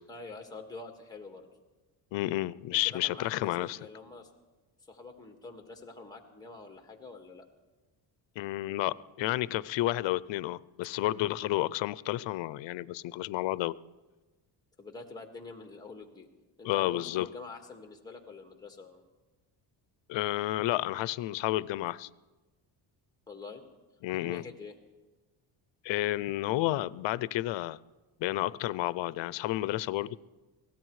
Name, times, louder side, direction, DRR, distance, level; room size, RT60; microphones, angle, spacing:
voice 1, 0.1-1.5 2.7-4.3 4.9-7.5 14.8-16.3 16.6-19.1 23.3-23.6 24.2-24.8, left 3 dB, 10° left, 4 dB, 1.7 m, -46 dB
voice 2, 2.1-3.8 8.4-13.8 16.6-17.3 20.1-22.1 24.0-24.4 25.8-27.8 28.2-30.2, left 16 dB, 75° left, 20 dB, 0.5 m, -31 dB
23.5 x 17.0 x 3.2 m, 1.2 s
cardioid pair, 105°, 45 cm